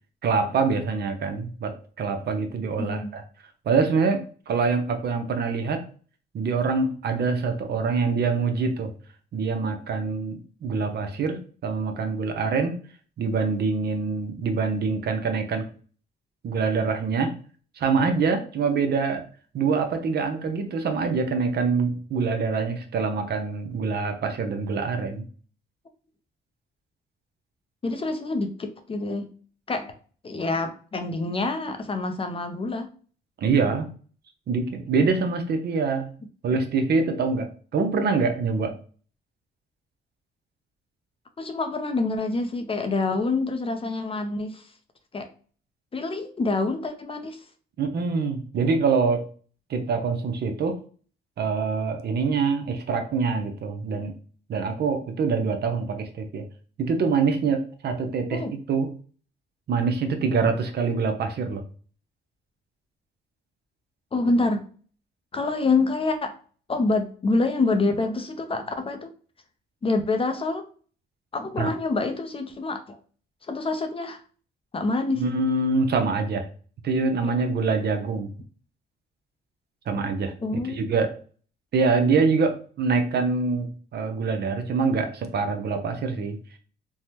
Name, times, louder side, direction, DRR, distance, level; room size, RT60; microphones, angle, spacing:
voice 1, 0.2-3.2 3.7-5.9 6.3-8.9 9.3-12.8 13.2-15.7 16.4-17.4 17.8-19.3 19.5-25.2 33.4-33.9 34.5-36.1 36.4-38.8 47.8-49.3 49.7-50.8 51.4-54.1 54.5-56.4 56.8-58.9 59.7-61.6 71.6-71.7 75.2-76.5 76.8-78.3 79.9-80.3 80.7-81.1 81.7-86.4, right 4 dB, 55° right, 6 dB, 0.6 m, -25 dB
voice 2, 2.8-3.2 27.8-29.3 29.7-29.9 30.2-32.9 41.4-44.7 45.1-45.3 45.9-47.4 58.3-58.5 64.1-64.6 65.3-66.4 66.7-69.1 69.8-70.7 71.3-73.0 73.5-74.2 74.7-75.2 77.3-77.4 80.4-80.9, left 3 dB, 30° left, 7 dB, 0.5 m, -26 dB
3.3 x 2.1 x 2.8 m, 0.42 s
cardioid pair, 90°, 20 cm